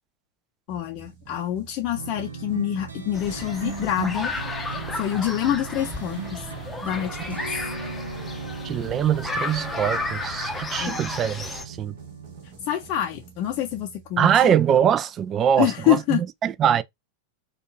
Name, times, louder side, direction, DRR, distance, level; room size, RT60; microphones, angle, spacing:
voice 1, 0.7-4.3 4.9-6.5 6.8-7.5 10.8-11.0 12.6-14.5 15.6-16.2, left 11 dB, 40° left, 0.6 m, -26 dB
sound 1, 0.7-14.6, right 7 dB, 50° right, 1.2 m, -48 dB
sound 2, 1.9-12.5, right 5 dB, 75° right, 0.7 m, -37 dB
sound 3, 3.1-11.7, left 2 dB, 10° left, 0.8 m, -33 dB
voice 2, 8.6-12.0 14.2-16.8, right 9 dB, 30° right, 0.3 m, -23 dB
4.3 x 2.5 x 3.0 m
figure-of-eight pair, 90°, 0 cm